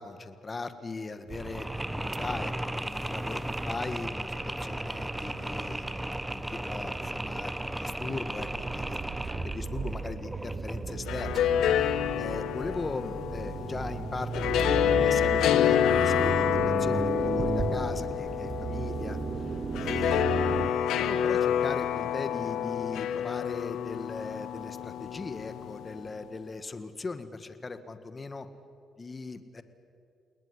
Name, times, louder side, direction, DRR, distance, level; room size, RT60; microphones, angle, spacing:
voice 1, 0.0-9.1 9.4-11.4 12.1-19.2 19.8-20.6 20.9-28.5 29.0-29.6, left 3 dB, 30° left, 11 dB, 1.9 m, -39 dB
Mechanisms, 1.3-11.1, right 1 dB, 10° right, 1.1 m, -35 dB
sound 1, 1.3-20.7, right 5 dB, 40° right, 1.0 m, -36 dB
sound 2, 10.9-26.1, left 10 dB, 85° left, 1.3 m, -28 dB
29.0 x 19.0 x 10.0 m, 2.4 s
cardioid pair, 90°, 0 cm